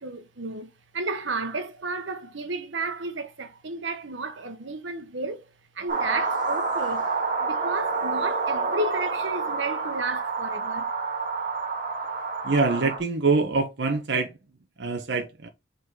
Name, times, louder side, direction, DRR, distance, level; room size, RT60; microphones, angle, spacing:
voice 1, 0.0-5.4 5.7-7.1 7.4-10.9, right 3 dB, 90° right, 1.2 m, -32 dB
sound 1, 5.9-13.0, right 4 dB, 45° right, 1.9 m, -28 dB
voice 2, 12.4-14.3 14.8-15.5, right 3 dB, 65° right, 1.0 m, -24 dB
5.3 x 4.0 x 4.7 m
head